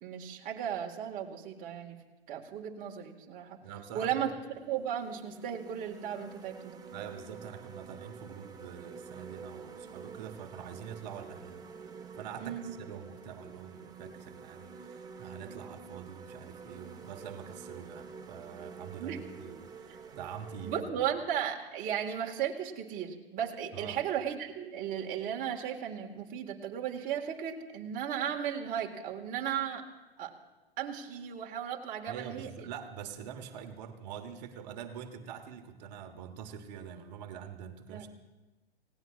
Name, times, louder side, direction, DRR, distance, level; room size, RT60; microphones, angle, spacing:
voice 1, 0.0-2.0 2.3-3.6 3.9-4.3 4.6-6.8 12.4-12.7 19.0-19.2 20.6-29.8 30.2-30.3 30.8-32.7 37.9-38.1, right 9 dB, 30° right, 0 dB, 1.8 m, -35 dB
voice 2, 3.6-4.2 6.9-11.7 12.1-21.0 23.7-24.0 32.1-38.1, right 8 dB, 45° right, 7 dB, 1.4 m, -45 dB
sound 1, 4.7-20.9, right 5 dB, 15° right, 1.0 m, -48 dB
28.0 x 17.5 x 2.5 m, 1.1 s
figure-of-eight pair, 110°, 30 cm